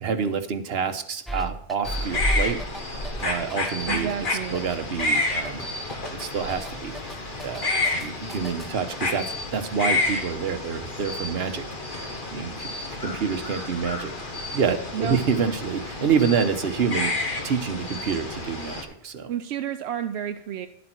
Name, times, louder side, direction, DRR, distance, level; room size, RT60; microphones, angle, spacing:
voice 1, 0.0-2.6 3.2-4.1 4.5-5.7 6.1-6.9 7.4-7.8 8.0-11.7 12.3-12.7 13.0-14.1 14.5-17.1 17.4-19.3, right 6 dB, 70° right, 8 dB, 1.2 m, -27 dB
sound 1, 1.3-8.7, right 1 dB, ahead, 0.6 m, -38 dB
sound 2, 1.8-18.8, left 2 dB, 50° left, 1.7 m, -30 dB
voice 2, 3.9-4.6 14.9-15.2 19.3-20.7, right 9 dB, 85° right, 8 dB, 0.9 m, -30 dB
11.5 x 8.4 x 4.5 m, 0.74 s
omnidirectional pair, 1.1 m